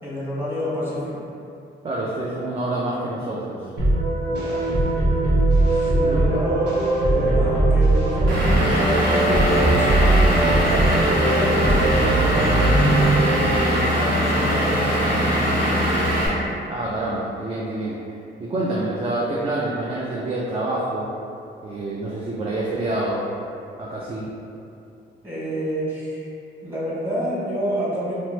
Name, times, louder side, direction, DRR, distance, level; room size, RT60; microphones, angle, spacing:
voice 1, 0.0-1.1 4.3-4.6 5.7-15.5 15.9-16.2 25.2-26.3 26.6-28.1, equal, 10° right, -9 dB, 1.1 m, -28 dB
voice 2, 1.8-3.7 6.0-6.2 7.2-7.4 16.7-18.0 18.4-21.1 21.6-23.3 23.8-24.4, right 2 dB, 30° right, -5 dB, 0.3 m, -27 dB
sound 1, 3.8-13.9, right 2 dB, 60° right, 0.8 m, -20 dB
Vehicle / Engine, 8.3-16.3, equal, 90° right, 0.8 m, -21 dB
2.9 x 2.0 x 3.0 m, 2.6 s
cardioid pair, 90°, 20 cm